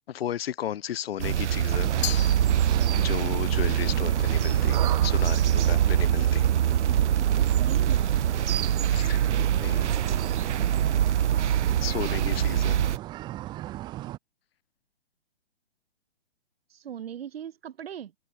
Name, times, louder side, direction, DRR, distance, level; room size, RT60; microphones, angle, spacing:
voice 1, 0.1-1.9 2.9-6.4 8.9-9.9 11.8-12.8, left 10 dB, 60° left, 0.6 m, -34 dB
sound 1, 1.2-13.0, right 10 dB, 85° right, 0.5 m, -24 dB
sound 2, 1.8-14.2, right 15 dB, 15° right, 0.7 m, -37 dB
Glass, 2.0-3.2, left 20 dB, 25° left, 0.8 m, -36 dB
voice 2, 7.6-8.1 12.0-12.2 16.7-18.1, right 9 dB, 60° right, 2.0 m, -39 dB
open air
hypercardioid pair, 140°, 34 cm